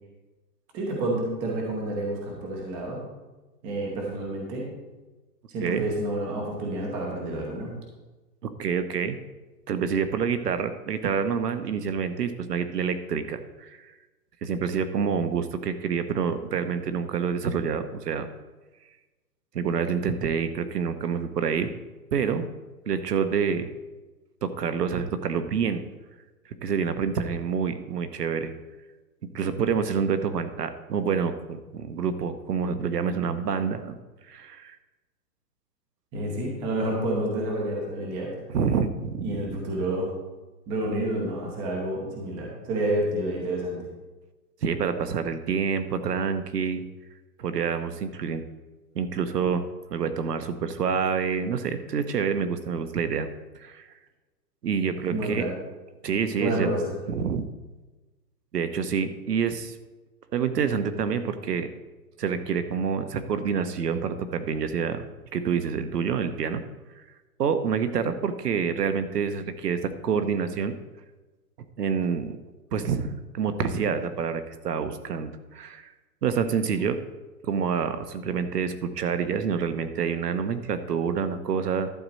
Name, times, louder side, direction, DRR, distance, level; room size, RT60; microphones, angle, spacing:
voice 1, 0.7-3.0 3.6-4.7 5.5-7.7 36.1-38.3 39.2-40.1 40.7-43.8 54.9-55.6 56.4-56.8, right 1 dB, 10° right, -1 dB, 0.8 m, -29 dB
voice 2, 8.4-9.2 9.7-13.9 14.4-18.3 19.5-21.7 22.1-22.4 22.9-23.7 24.4-25.8 26.6-28.5 29.3-34.0 34.3-34.8 38.5-39.6 44.6-46.8 47.4-48.4 48.9-49.6 49.9-53.3 53.5-53.9 54.6-55.5 56.0-56.7 57.1-57.5 58.5-59.7 60.3-61.7 62.2-65.0 65.3-66.6 67.4-70.7 71.8-72.4 72.7-75.9 76.2-77.0 77.4-81.9, right 6 dB, 70° right, 10 dB, 1.1 m, -27 dB
11.5 x 7.7 x 4.2 m, 1.2 s
hypercardioid pair, 165°, 49 cm